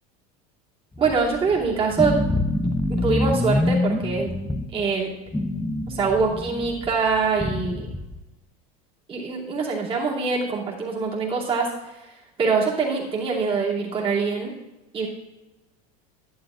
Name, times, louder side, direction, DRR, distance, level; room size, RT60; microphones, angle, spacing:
sound 1, 0.9-4.8 5.3-8.2, left 1 dB, 5° left, 0.4 m, -26 dB
voice 1, 1.0-2.2 2.9-4.3 4.7-5.1 5.9-7.9 9.1-14.6 14.9-15.1, right 4 dB, 30° right, -5 dB, 2.7 m, -24 dB
11.5 x 11.0 x 2.5 m, 1.0 s
supercardioid pair, 130°, 19 cm